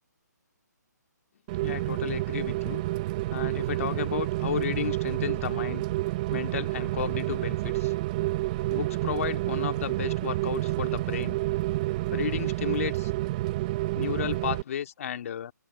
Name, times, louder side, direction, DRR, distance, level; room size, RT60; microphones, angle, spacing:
Rain, 1.5-14.6, right 18 dB, 25° right, 0.6 m, -29 dB
voice 1, 1.6-2.8 3.3-5.8 6.3-7.9 8.7-11.4 12.1-13.1 13.9-15.5, left 9 dB, 50° left, 2.0 m, -33 dB
open air
hypercardioid pair, 150°, 10 cm